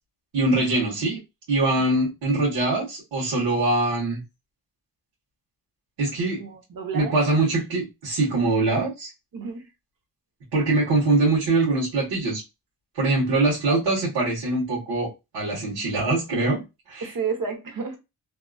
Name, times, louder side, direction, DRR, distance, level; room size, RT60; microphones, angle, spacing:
voice 1, 0.3-1.2 1.5-4.2 6.0-6.4 6.9-9.1 10.5-12.4 12.9-16.6 16.9-17.1, right 2 dB, 85° right, 1.4 m, -23 dB
voice 2, 6.4-7.2 9.3-9.6 17.0-18.0, right 5 dB, 55° right, 1.0 m, -31 dB
2.9 x 2.5 x 2.3 m
cardioid pair, 75°, 40 cm